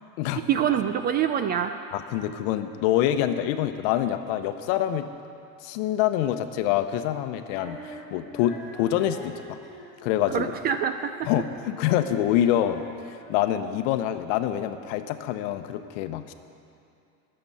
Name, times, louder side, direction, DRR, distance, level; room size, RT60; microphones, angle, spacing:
voice 1, 0.5-1.7 10.3-11.1, right 9 dB, 25° right, 8 dB, 0.3 m, -25 dB
voice 2, 1.9-5.1 5.6-9.6 10.0-10.5 11.2-16.3, left 11 dB, 60° left, 9 dB, 1.0 m, -26 dB
Female singing, 7.4-13.8, equal, ahead, 3.2 m, -45 dB
21.0 x 7.8 x 5.7 m, 2.6 s
supercardioid pair, 135°, 41 cm